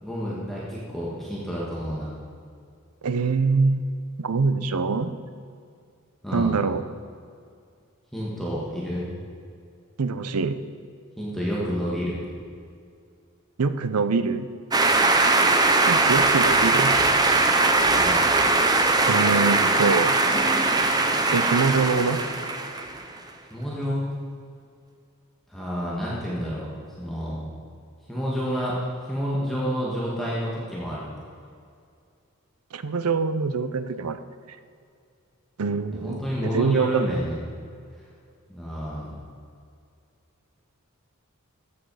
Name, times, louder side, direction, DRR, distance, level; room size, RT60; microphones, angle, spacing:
voice 1, 0.0-2.1 6.2-6.5 8.1-9.1 11.2-12.2 18.0-18.2 23.5-24.1 25.5-26.7 27.0-27.4 28.1-28.8 29.1-31.1 35.9-37.4 38.5-39.2, equal, ahead, -7 dB, 1.9 m, -29 dB
voice 2, 3.0-3.9 4.2-5.1 6.3-6.8 10.0-10.6 13.6-14.5 15.8-16.9 19.1-20.2 21.3-22.2 32.7-34.2 35.6-36.2 36.5-37.2, right 4 dB, 80° right, 12 dB, 0.6 m, -24 dB
sound 1, 14.7-23.0, right 3 dB, 20° right, 0.7 m, -20 dB
14.0 x 8.6 x 4.9 m, 2.3 s
head